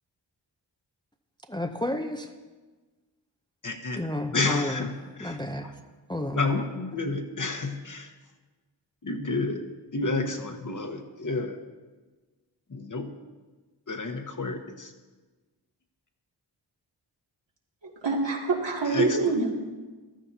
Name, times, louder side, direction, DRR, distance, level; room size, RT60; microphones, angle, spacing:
voice 1, 1.5-2.3 4.0-4.9 5.2-5.7 6.1-6.4, left 1 dB, 10° left, 5 dB, 0.5 m, -31 dB
voice 2, 3.6-4.0 4.3-4.9 5.2-5.4 6.3-8.1 9.0-9.6 9.9-11.6 12.7-13.1 13.9-14.9 18.9-19.3, left 3 dB, 45° left, 5 dB, 1.1 m, -30 dB
voice 3, 17.8-19.5, right 4 dB, 70° right, -2 dB, 2.4 m, -26 dB
15.0 x 13.0 x 2.8 m, 1.3 s
wide cardioid pair, 90°, 44 cm